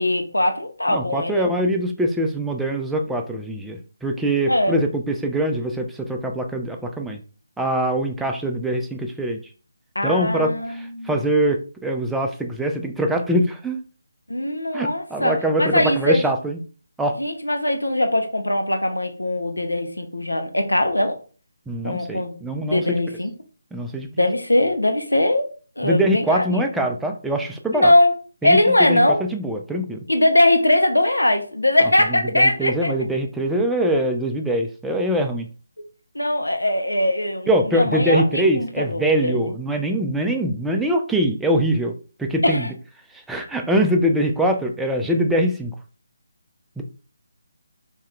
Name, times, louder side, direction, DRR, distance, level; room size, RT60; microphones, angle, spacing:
voice 1, 0.0-1.5 4.5-4.8 9.9-11.1 14.3-16.2 17.2-21.2 21.8-22.4 22.7-23.3 24.2-25.5 25.8-26.7 27.7-28.1 28.4-29.2 30.1-32.9 36.1-39.4 42.4-42.7, left 1 dB, 90° left, 5 dB, 0.9 m, -21 dB
voice 2, 0.9-7.2 7.6-9.4 10.0-13.8 14.7-16.6 17.0-17.2 21.7-23.0 23.7-24.1 25.8-27.9 28.4-28.6 28.9-29.0 29.3-30.0 32.1-35.5 37.5-42.7 43.1-45.7 46.8-46.9, right 1 dB, 5° right, 2 dB, 0.4 m, -23 dB
3.6 x 2.8 x 3.2 m, 0.38 s
figure-of-eight pair, 150°, 0 cm